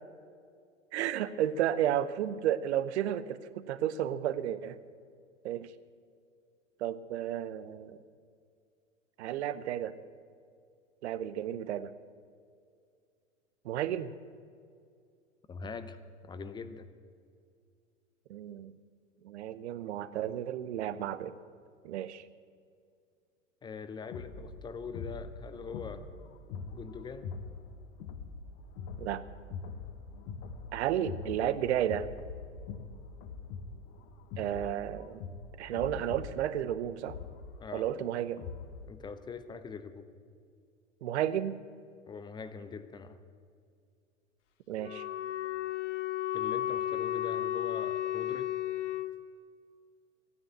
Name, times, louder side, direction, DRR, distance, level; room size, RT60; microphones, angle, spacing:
voice 1, 0.9-4.8 5.4-5.7 6.8-8.0 9.2-9.9 11.0-11.9 13.6-14.1 18.3-18.8 19.2-21.3 21.8-22.2 29.0-29.2 30.7-32.1 34.4-35.1 35.6-37.2 37.7-38.4 41.0-41.6 44.7-45.1, right 11 dB, 60° right, 14 dB, 0.9 m, -32 dB
voice 2, 15.5-16.0 16.2-16.9 23.6-26.0 26.7-27.3 37.6-37.9 38.9-40.1 42.1-43.2 46.3-48.5, left 5 dB, 10° left, 12 dB, 0.6 m, -42 dB
sound 1, 24.1-38.9, left 5 dB, 40° left, 1.2 m, -43 dB
Wind instrument woodwind instrument, 44.8-49.1, left 12 dB, 65° left, 1.1 m, -33 dB
15.0 x 9.8 x 8.1 m, 2.3 s
figure-of-eight pair, 100°, 39 cm